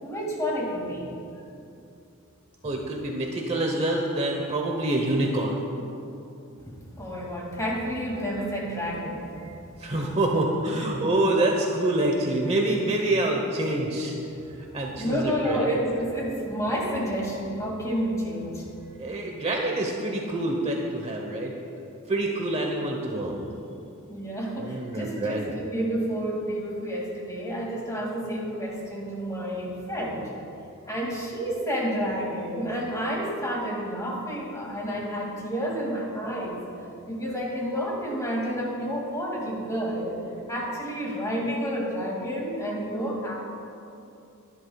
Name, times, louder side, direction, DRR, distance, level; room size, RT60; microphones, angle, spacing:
voice 1, 0.0-1.1 6.7-9.5 14.9-18.7 24.1-30.3 30.9-36.6 37.1-40.2 40.5-43.3, equal, 15° left, -2 dB, 2.3 m, -30 dB
voice 2, 2.6-5.6 9.8-14.1 14.6-15.7 19.0-21.5 22.1-23.5 24.6-25.5, right 1 dB, 30° right, 0 dB, 1.0 m, -26 dB
22.0 x 11.0 x 2.4 m, 2.7 s
head